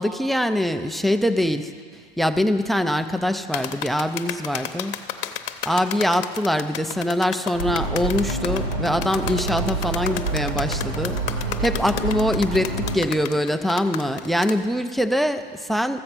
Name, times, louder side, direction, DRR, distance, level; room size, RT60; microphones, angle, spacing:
voice 1, 0.0-1.7 2.2-5.0 5.7-11.2 11.6-16.0, equal, ahead, 10 dB, 0.3 m, -23 dB
sound 1, 3.5-14.6, left 11 dB, 70° left, 0.9 m, -32 dB
sound 2, 7.5-13.0, right 3 dB, 85° right, 2.4 m, -27 dB
14.0 x 7.7 x 5.9 m, 2.1 s
supercardioid pair, 115°, 29 cm